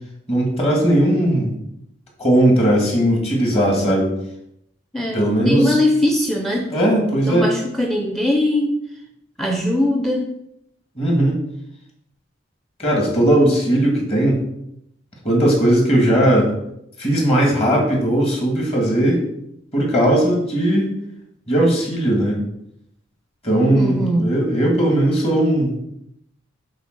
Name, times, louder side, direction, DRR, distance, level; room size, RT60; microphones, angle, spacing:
voice 1, 0.3-1.5 2.2-4.1 5.1-5.8 6.7-7.5 11.0-11.4 12.8-14.4 15.2-16.5 17.0-19.2 19.7-20.9 21.5-22.4 23.4-25.8, right 1 dB, 30° left, -1 dB, 2.5 m, -18 dB
voice 2, 3.6-4.0 4.9-6.7 7.2-8.8 9.4-10.3 23.7-24.4, left 1 dB, ahead, 2 dB, 0.6 m, -21 dB
8.2 x 4.1 x 6.1 m, 0.79 s
head